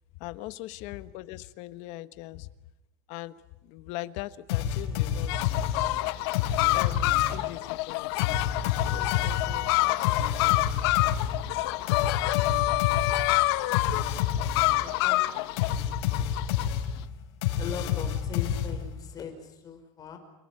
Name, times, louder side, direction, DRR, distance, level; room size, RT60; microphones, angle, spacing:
voice 1, 0.2-2.5 3.1-3.4 3.6-5.5 6.7-8.3 8.8-10.2, left 16 dB, 55° left, 13 dB, 1.4 m, -40 dB
sound 1, 4.5-7.5 8.2-14.9 15.6-19.1, left 9 dB, 90° left, 5.7 m, -29 dB
sound 2, 5.3-16.7, left 19 dB, 75° left, 1.3 m, -27 dB
voice 2, 14.8-16.2 17.6-20.2, left 7 dB, 30° left, 6 dB, 5.5 m, -41 dB
30.0 x 20.0 x 9.8 m, 0.90 s
cardioid pair, 165°, 14 cm